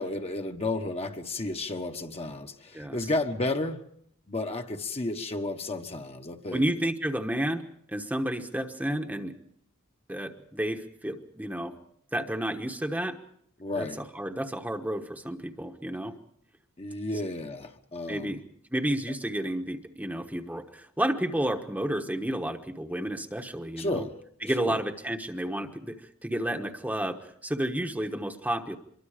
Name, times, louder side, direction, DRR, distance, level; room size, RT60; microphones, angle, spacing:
voice 1, 0.0-3.8 4.3-6.6 13.6-14.0 16.8-18.4 23.8-24.1 24.6-24.8, left 2 dB, 30° left, 4 dB, 1.2 m, -32 dB
voice 2, 6.5-7.6 7.9-9.3 10.1-11.8 12.1-13.2 13.7-13.9 14.1-16.2 18.1-18.4 18.7-24.0 24.4-28.8, right 1 dB, 5° right, 4 dB, 1.2 m, -31 dB
24.5 x 23.0 x 5.0 m, 0.65 s
head